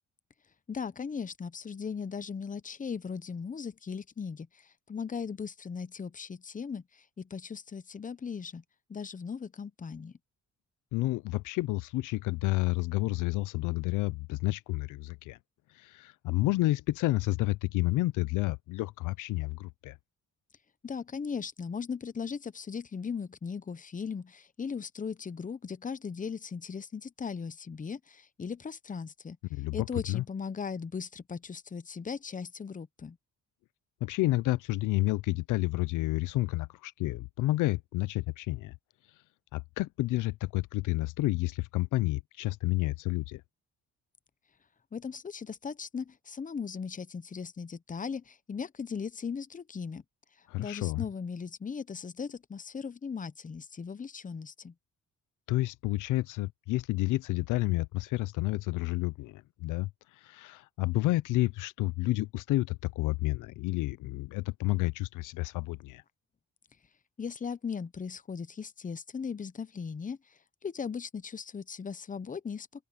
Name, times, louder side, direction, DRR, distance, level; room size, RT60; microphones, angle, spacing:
voice 1, 0.7-8.6 8.9-10.1 20.8-29.4 29.7-33.2 44.9-50.0 50.6-54.7 67.2-72.7, left 6 dB, 25° left, 0.9 m, -38 dB
voice 2, 10.9-15.4 15.7-20.0 29.5-30.2 34.0-38.7 39.5-43.4 50.5-51.0 55.5-59.9 60.2-66.0, left 18 dB, 85° left, 0.6 m, -30 dB
open air
cardioid pair, 90°, 30 cm